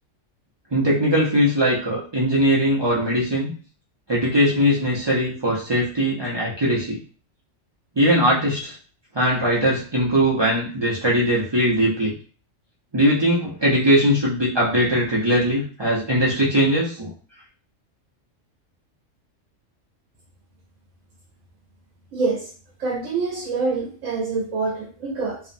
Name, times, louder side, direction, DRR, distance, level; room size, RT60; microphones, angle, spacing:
voice 1, 0.7-3.5 4.1-7.0 8.0-8.7 9.1-12.1 12.9-17.1, equal, 45° right, -6 dB, 0.3 m, -20 dB
voice 2, 22.1-22.5 22.8-25.4, right 4 dB, 85° right, -2 dB, 1.0 m, -26 dB
2.7 x 2.1 x 2.5 m, 0.39 s
omnidirectional pair, 1.3 m